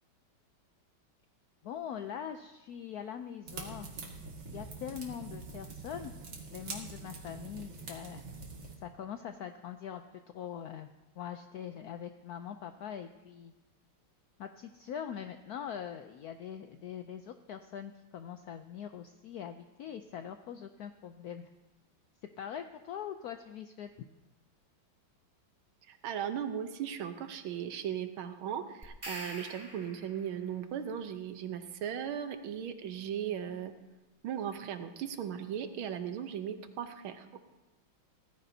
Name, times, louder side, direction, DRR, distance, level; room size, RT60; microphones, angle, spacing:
voice 1, 1.6-3.9 4.5-6.1 6.5-8.3 8.8-10.9 11.2-13.5 14.4-21.5 22.4-23.9, left 8 dB, 80° left, 8 dB, 0.8 m, -42 dB
sound 1, 3.5-8.7, right 3 dB, 60° right, 2.3 m, -44 dB
voice 2, 25.9-33.7 34.2-37.4, right 9 dB, 85° right, 8 dB, 1.7 m, -37 dB
sound 2, 28.8-30.4, right 1 dB, 15° right, 1.3 m, -45 dB
17.0 x 14.0 x 2.8 m, 1.1 s
omnidirectional pair, 2.2 m